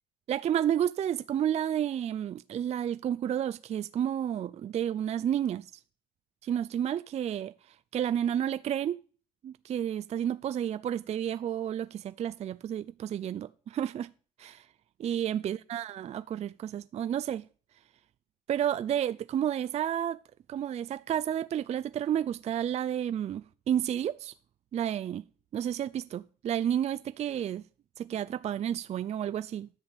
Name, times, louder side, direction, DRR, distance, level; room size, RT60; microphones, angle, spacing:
voice 1, 0.3-5.7 6.4-7.5 7.9-9.0 9.4-14.1 14.4-14.7 15.0-17.4 18.5-20.2 20.5-24.3 24.7-25.2 25.5-27.6 28.0-29.7, right 10 dB, 40° right, 0.4 m, -31 dB
10.5 x 4.9 x 7.7 m
cardioid pair, 110°, 17 cm